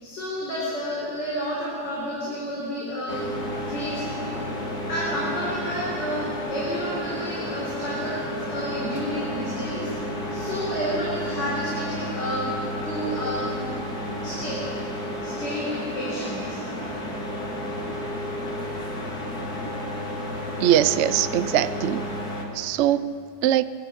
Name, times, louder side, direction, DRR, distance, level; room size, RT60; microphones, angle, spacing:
voice 1, 0.0-3.3 3.7-4.1 4.9-9.9 10.3-12.5 12.8-13.5 14.2-14.7 15.2-16.6, equal, 80° left, -6 dB, 4.8 m, -30 dB
sound 1, 3.1-22.4, equal, 60° left, 3.0 m, -31 dB
voice 2, 20.6-22.0 22.5-23.6, right 11 dB, 80° right, 14 dB, 0.6 m, -22 dB
23.0 x 12.0 x 9.9 m, 2.5 s
omnidirectional pair, 1.9 m